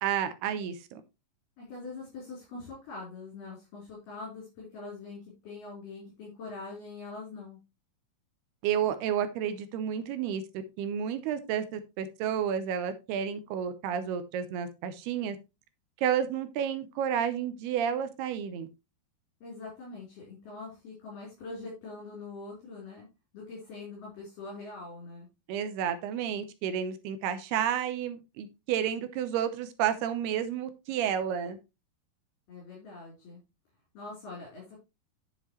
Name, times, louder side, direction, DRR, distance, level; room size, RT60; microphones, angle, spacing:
voice 1, 0.0-1.0 8.6-10.4 10.8-15.4 16.0-18.7 25.5-31.6, right 9 dB, 75° right, 2.8 m, -31 dB
voice 2, 1.6-7.6 19.4-23.1 23.3-25.3 32.5-33.4 33.9-34.8, left 3 dB, 55° left, 5.6 m, -43 dB
10.0 x 7.2 x 3.1 m
omnidirectional pair, 4.7 m